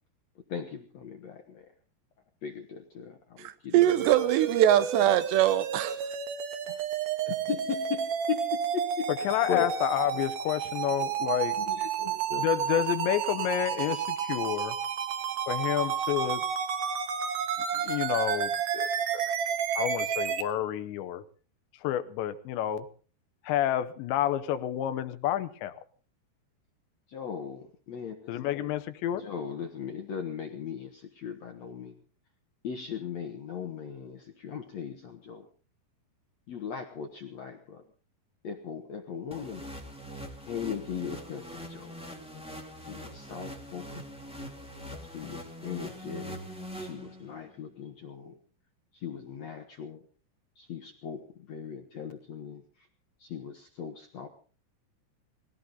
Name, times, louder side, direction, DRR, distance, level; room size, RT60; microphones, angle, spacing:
voice 1, 0.5-1.6 2.4-4.3 4.8-4.9 6.7-6.8 7.3-9.7 10.1-10.2 10.9-11.0 11.6-12.5 27.1-28.5 29.2-31.9 32.6-35.5 36.5-37.8 38.4-39.7 40.5-41.9 42.8-44.0 45.1-46.4 46.8-48.3 48.9-50.0 50.6-52.6 53.2-54.3, left 7 dB, 65° left, 1.7 m, -38 dB
voice 2, 3.7-6.0, right 12 dB, 80° right, 3.1 m, -22 dB
sound 1, 3.8-20.4, right 8 dB, 65° right, 2.3 m, -31 dB
voice 3, 9.2-11.6 12.4-14.8 15.5-16.4 17.7-18.9 19.7-21.2 21.8-22.9 23.5-25.8 28.3-29.3, left 11 dB, 85° left, 3.2 m, -29 dB
sound 2, 39.3-47.5, equal, 5° right, 0.9 m, -43 dB
20.0 x 16.5 x 3.9 m
omnidirectional pair, 5.0 m